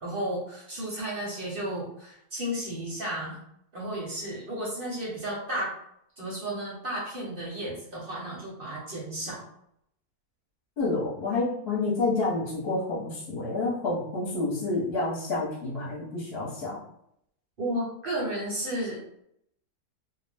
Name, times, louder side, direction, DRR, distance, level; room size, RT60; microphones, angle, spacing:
voice 1, 0.0-3.4 3.7-5.7 6.2-9.4 17.6-19.0, right 1 dB, 45° right, -5 dB, 0.8 m, -33 dB
voice 2, 10.8-16.8, left 3 dB, 45° left, -6 dB, 1.1 m, -29 dB
2.6 x 2.1 x 3.4 m, 0.73 s
omnidirectional pair, 1.6 m